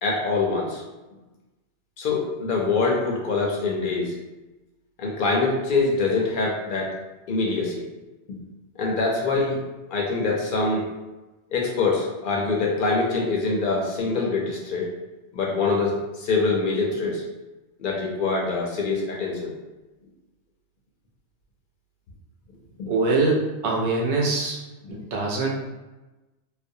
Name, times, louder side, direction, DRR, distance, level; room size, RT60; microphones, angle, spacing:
voice 1, 0.0-0.8 2.0-4.1 5.0-7.0 7.3-7.9 8.3-8.4 8.8-9.6 9.9-10.9 11.5-14.9 15.3-17.3 17.8-19.5 22.8-22.9 24.9-25.0, left 3 dB, 60° left, -2 dB, 0.6 m, -24 dB
voice 2, 22.9-24.6 24.9-25.5, right 3 dB, 75° right, -2 dB, 0.8 m, -23 dB
2.4 x 2.0 x 2.6 m, 1.1 s
omnidirectional pair, 1.2 m